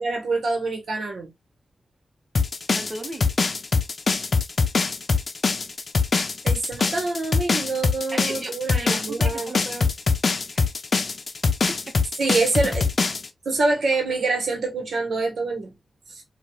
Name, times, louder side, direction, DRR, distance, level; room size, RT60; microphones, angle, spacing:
voice 1, 0.0-1.3 6.4-9.5 12.2-12.9 13.4-15.7 16.1-16.2, right 3 dB, 85° right, 1.1 m, -25 dB
sound 1, 2.3-13.3, left 4 dB, 60° left, 0.5 m, -22 dB
voice 2, 2.7-3.3 6.8-6.9 8.1-9.9 10.5-10.7 11.7-12.0, right 2 dB, 40° right, 1.2 m, -36 dB
4.5 x 2.4 x 2.2 m
cardioid pair, 65°, 0 cm